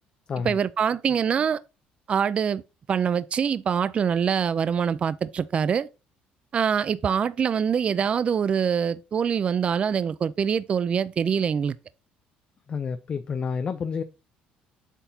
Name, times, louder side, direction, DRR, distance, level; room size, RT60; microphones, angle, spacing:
voice 1, 0.4-1.6 2.1-2.6 2.9-5.9 6.5-11.7, right 7 dB, 40° right, 0.4 m, -24 dB
voice 2, 12.7-14.0, left 6 dB, 40° left, 0.6 m, -29 dB
8.1 x 5.7 x 2.8 m
cardioid pair, 105°, 3 cm